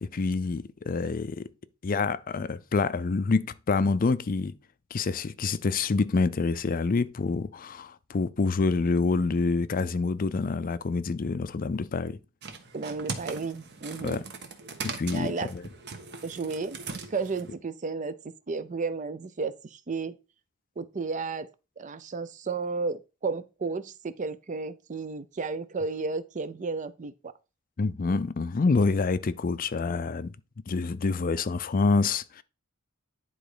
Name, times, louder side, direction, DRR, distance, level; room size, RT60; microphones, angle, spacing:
voice 1, 0.0-1.5 1.8-4.5 4.9-12.2 14.0-14.2 14.8-15.6 27.8-30.3 30.7-32.4, left 4 dB, 40° left, 0.5 m, -27 dB
sound 1, 12.4-17.5, right 4 dB, 50° right, 1.2 m, -40 dB
voice 2, 12.7-14.2 15.1-15.5 16.2-16.8 17.1-18.2 18.5-20.2 20.8-21.5 21.8-27.3, right 4 dB, 35° right, 0.5 m, -33 dB
10.0 x 3.9 x 4.9 m
head